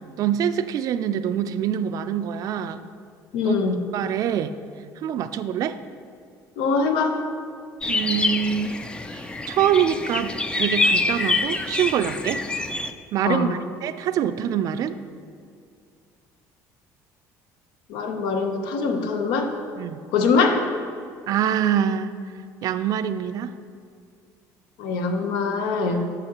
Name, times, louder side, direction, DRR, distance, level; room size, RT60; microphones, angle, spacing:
voice 1, 0.2-2.8 3.4-3.6 3.9-4.5 5.0-5.8 7.9-8.8 9.1-12.4 13.1-15.0 19.8-20.0 21.3-22.1 22.6-23.5 25.9-26.1, right 9 dB, 55° right, 12 dB, 0.4 m, -25 dB
voice 2, 3.3-3.8 6.6-7.2 13.3-13.5 17.9-19.5 20.1-20.6 24.8-26.1, left 4 dB, 85° left, 5 dB, 0.8 m, -23 dB
sound 1, 7.8-12.9, left 2 dB, 15° left, 0.3 m, -26 dB
11.0 x 6.1 x 2.9 m, 2.2 s
cardioid pair, 120°, 7 cm